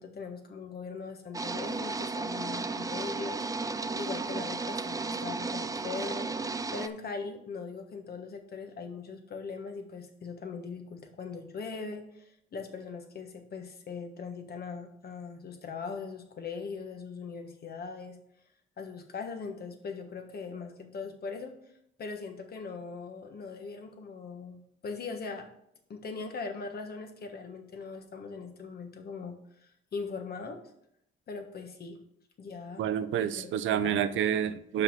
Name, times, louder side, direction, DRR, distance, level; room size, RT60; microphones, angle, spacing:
voice 1, 0.0-18.2 18.8-21.5 22.0-25.5 25.9-30.7 31.3-32.0 32.4-32.9 33.2-34.0, left 4 dB, 50° left, 5 dB, 1.4 m, -40 dB
sound 1, 1.3-6.9, right 3 dB, 15° right, 0.4 m, -34 dB
voice 2, 32.8-34.8, right 9 dB, 75° right, 10 dB, 0.6 m, -28 dB
5.7 x 5.4 x 5.9 m, 0.74 s
cardioid pair, 90°, 20 cm